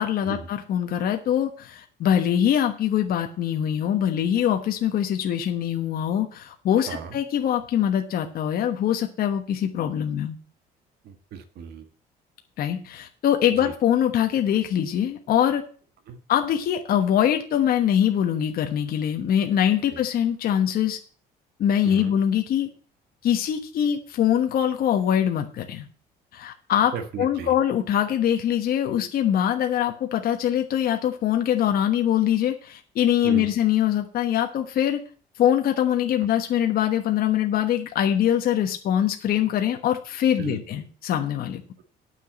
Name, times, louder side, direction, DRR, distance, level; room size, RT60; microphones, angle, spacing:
voice 1, 0.0-10.4 12.6-15.6 16.3-21.0 21.6-22.7 23.2-25.9 26.3-26.9 27.2-35.0 35.4-41.6, left 10 dB, 60° left, 5 dB, 1.2 m, -23 dB
voice 2, 6.9-7.2 11.0-11.9 13.5-13.7 16.1-16.2 19.9-20.0 21.8-22.1 26.9-27.6 33.2-33.5 40.4-40.6, right 7 dB, 70° right, 8 dB, 1.6 m, -35 dB
9.2 x 6.0 x 8.0 m, 0.42 s
cardioid pair, 110°, 17 cm